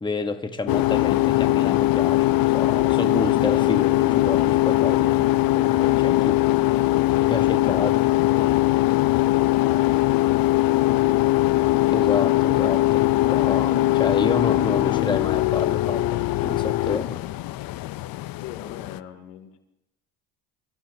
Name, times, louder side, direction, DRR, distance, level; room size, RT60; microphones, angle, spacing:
voice 1, 0.0-6.3 7.3-7.9 8.3-8.6 11.9-17.2, left 3 dB, 10° left, 1.2 m, -29 dB
sound 1, 0.7-19.0, left 17 dB, 50° left, 0.6 m, -21 dB
voice 2, 6.1-6.5 18.4-19.6, left 10 dB, 85° left, 2.8 m, -42 dB
27.5 x 15.5 x 2.8 m
supercardioid pair, 80°, 45 cm